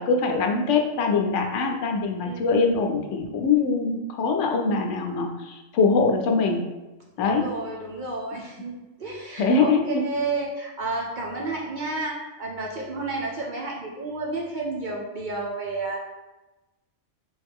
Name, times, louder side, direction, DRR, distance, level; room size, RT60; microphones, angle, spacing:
voice 1, 0.0-6.6 7.2-7.5 9.4-10.0, left 4 dB, 75° left, 3 dB, 0.9 m, -23 dB
voice 2, 7.2-16.0, right 3 dB, 50° right, -2 dB, 0.6 m, -31 dB
3.8 x 3.1 x 3.5 m, 1.1 s
omnidirectional pair, 1.2 m